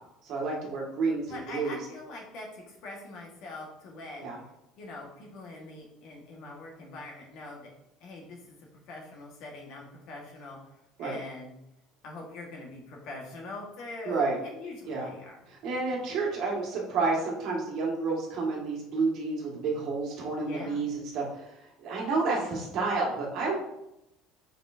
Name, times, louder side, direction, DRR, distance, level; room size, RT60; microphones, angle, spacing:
voice 1, 0.3-1.8 4.2-4.4 11.0-11.2 14.0-14.4 14.8-15.1 15.5-21.2 21.8-23.6, right 3 dB, 50° right, -2 dB, 1.8 m, -30 dB
voice 2, 1.3-4.2 4.8-7.7 8.0-8.6 8.9-10.6 11.0-11.6 12.0-15.8 16.3-16.5 20.3-20.9 22.4-22.6, left 2 dB, 55° left, -1 dB, 1.5 m, -43 dB
7.1 x 4.9 x 2.7 m, 0.86 s
cardioid pair, 165°, 0 cm